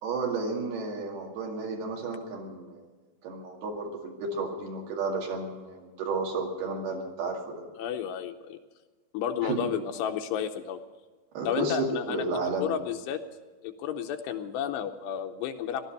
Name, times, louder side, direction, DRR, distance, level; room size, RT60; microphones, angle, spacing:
voice 1, 0.0-2.8 3.2-7.6 9.4-9.7 11.3-12.7, right 3 dB, 65° right, 0 dB, 4.0 m, -32 dB
voice 2, 7.8-8.6 9.1-10.8 11.5-12.3 12.6-13.2 13.6-15.9, left 9 dB, 80° left, 6 dB, 2.8 m, -32 dB
17.5 x 12.5 x 6.7 m, 1.3 s
omnidirectional pair, 5.2 m